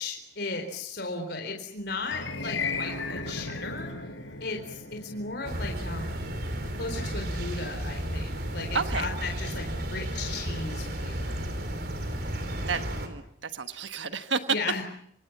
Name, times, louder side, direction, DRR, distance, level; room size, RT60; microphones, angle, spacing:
voice 1, 0.0-3.9 4.4-6.3 6.8-11.3 14.5-14.8, left 3 dB, 55° left, 3 dB, 4.1 m, -36 dB
sound 1, 2.0-12.3, left 3 dB, 85° left, 5.9 m, -39 dB
sound 2, 5.4-13.1, right 1 dB, 55° right, 4.0 m, -33 dB
voice 2, 8.7-9.1 12.7-14.4, right 5 dB, 75° right, 9 dB, 1.4 m, -31 dB
27.0 x 26.0 x 7.4 m, 0.68 s
head